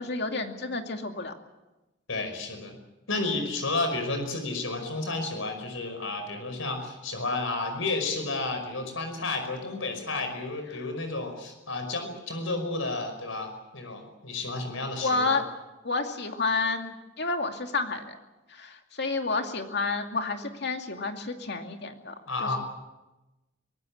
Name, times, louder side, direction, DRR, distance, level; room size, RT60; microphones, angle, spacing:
voice 1, 0.0-1.3 15.0-15.4 15.8-18.2 18.5-22.1 22.4-22.6, left 3 dB, 55° left, 5 dB, 2.5 m, -30 dB
voice 2, 2.1-2.8 3.1-15.3 22.3-22.6, left 3 dB, 90° left, 6 dB, 5.4 m, -31 dB
23.5 x 19.0 x 8.7 m, 1.0 s
head